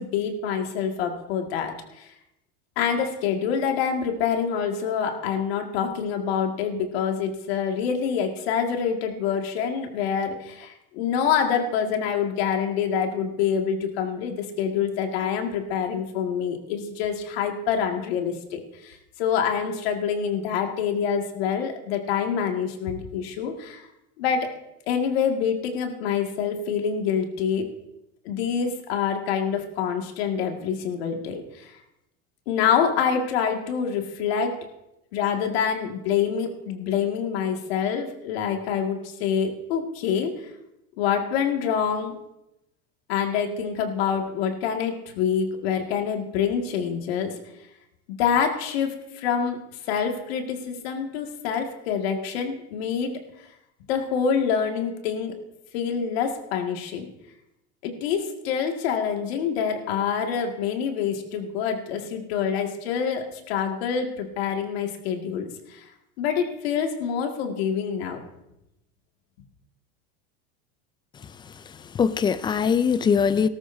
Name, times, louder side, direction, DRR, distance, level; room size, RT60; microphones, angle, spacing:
voice 1, 0.0-2.1 2.8-23.9 24.2-24.5 24.9-27.7 28.3-31.7 32.5-34.6 35.1-40.3 41.0-42.2 43.1-47.3 48.2-49.6 49.9-53.2 53.9-55.3 55.7-57.1 57.8-65.8 66.2-68.2, left 7 dB, 80° left, 2.0 m, -26 dB
voice 2, 71.2-73.5, left 6 dB, 15° left, 0.3 m, -23 dB
17.5 x 13.5 x 2.7 m
supercardioid pair, 140°, 31 cm